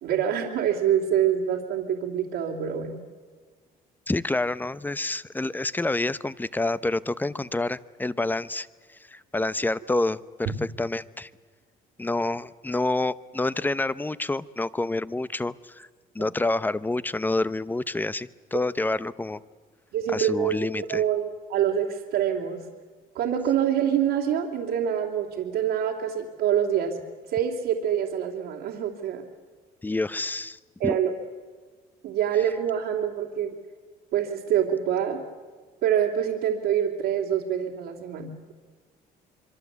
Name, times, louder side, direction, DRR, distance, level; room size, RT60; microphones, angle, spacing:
voice 1, 0.0-3.0 16.2-16.3 19.9-22.6 23.1-27.0 27.3-29.2 30.8-31.1 32.0-33.5 34.1-35.2 35.8-38.3, right 9 dB, 80° right, -3 dB, 3.0 m, -26 dB
voice 2, 4.1-8.7 9.1-11.3 12.0-15.9 16.1-19.4 20.1-21.0 29.8-31.0, left 2 dB, 10° left, 17 dB, 0.8 m, -28 dB
25.5 x 24.0 x 8.2 m, 1.5 s
cardioid pair, 110°, 17 cm